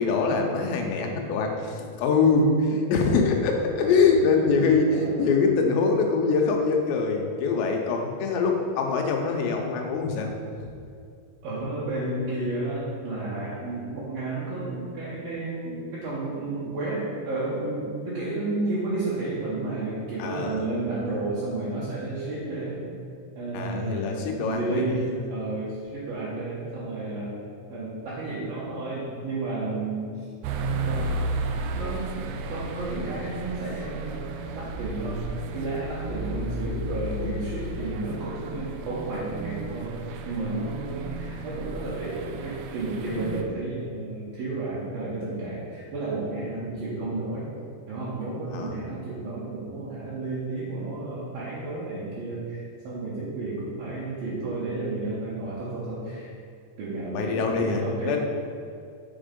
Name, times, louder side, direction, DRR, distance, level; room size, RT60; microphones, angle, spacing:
voice 1, 0.0-10.3 10.6-10.7 20.2-20.7 23.5-25.2 37.1-37.3 48.5-48.8 57.1-58.2, left 4 dB, 85° left, 2 dB, 3.0 m, -24 dB
voice 2, 3.8-4.4 4.9-5.2 11.4-22.8 23.3-27.4 27.7-30.2 30.9-31.1 31.8-34.3 34.5-35.3 35.5-39.9 40.3-47.5 47.9-56.3 56.8-58.2, right 2 dB, 65° right, -9 dB, 2.7 m, -32 dB
sound 1, 30.4-43.4, right 2 dB, 85° right, 2.9 m, -33 dB
7.0 x 5.1 x 5.2 m, 2.4 s
omnidirectional pair, 5.0 m